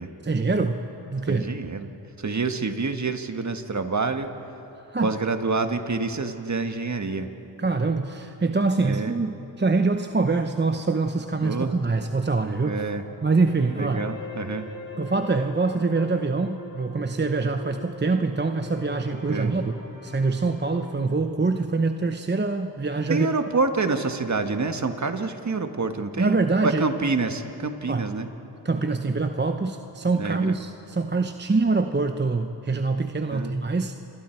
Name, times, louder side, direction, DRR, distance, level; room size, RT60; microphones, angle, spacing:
voice 1, 0.2-1.4 4.9-5.1 7.6-12.8 13.2-14.0 15.0-23.3 26.2-26.8 27.9-28.1 28.6-33.9, right 3 dB, 25° right, 7 dB, 1.0 m, -24 dB
voice 2, 1.3-1.9 2.2-4.3 5.0-7.3 8.8-9.1 11.4-11.7 12.6-13.0 13.8-14.7 19.3-19.6 23.1-26.4 26.6-28.3 30.2-30.5 33.3-33.5, right 3 dB, 40° right, 7 dB, 1.6 m, -27 dB
sound 1, 11.6-21.1, left 3 dB, 25° left, 4.3 m, -42 dB
28.5 x 23.0 x 4.6 m, 3.0 s
cardioid pair, 50°, 43 cm